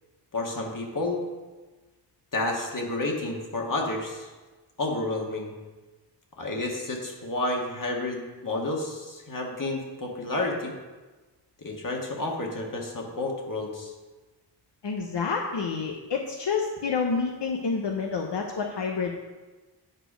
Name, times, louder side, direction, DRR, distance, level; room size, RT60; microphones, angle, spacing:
voice 1, 0.3-1.2 2.3-4.3 4.8-5.5 6.4-10.7 11.6-13.9, left 2 dB, 50° left, 0 dB, 1.6 m, -30 dB
voice 2, 14.8-19.2, left 5 dB, 80° left, 1 dB, 0.8 m, -28 dB
9.9 x 5.1 x 5.0 m, 1.2 s
wide cardioid pair, 70°, 41 cm